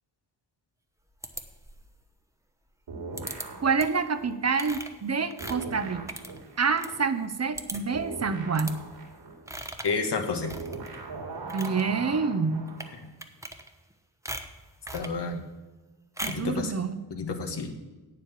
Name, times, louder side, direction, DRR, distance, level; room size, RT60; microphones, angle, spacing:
sound 1, 1.2-1.9 3.2-3.5 3.8-4.1 4.5-6.9 7.2-7.3 7.6-8.0 8.5-8.8 9.5-10.0 10.4-11.0 11.4-11.8 12.7-12.9 13.2-13.9 14.3-15.2 16.2-16.5, right 1 dB, 5° right, 1.0 m, -39 dB
sound 2, 2.9-5.1 5.4-13.0, right 3 dB, 80° right, 2.8 m, -41 dB
voice 1, 3.6-6.0 6.6-8.8 11.5-12.6 16.2-17.0, right 5 dB, 35° right, 11 dB, 0.8 m, -27 dB
voice 2, 9.8-10.5 14.9-15.4 16.3-16.7 17.1-17.8, left 4 dB, 70° left, 5 dB, 1.7 m, -30 dB
8.5 x 7.6 x 7.4 m, 1.2 s
cardioid pair, 75°, 43 cm